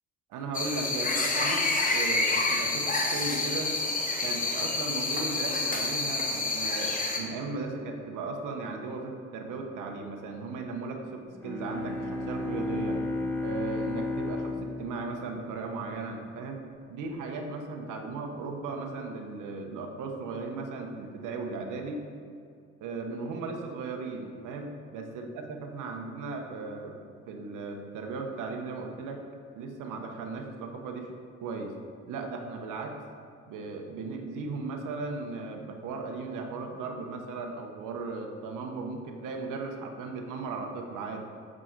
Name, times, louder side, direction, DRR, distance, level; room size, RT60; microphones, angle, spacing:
voice 1, 0.3-3.7 4.2-13.0 13.4-16.6 16.9-22.0 22.8-27.0 27.3-29.2 29.6-31.7 32.1-32.9 33.5-41.3, right 3 dB, 90° right, 3 dB, 1.0 m, -37 dB
sound 1, 0.5-7.2, left 3 dB, 25° left, 1.2 m, -28 dB
Bowed string instrument, 11.3-16.1, left 2 dB, 5° left, 0.8 m, -33 dB
6.4 x 6.2 x 4.5 m, 2.4 s
cardioid pair, 90°, 30 cm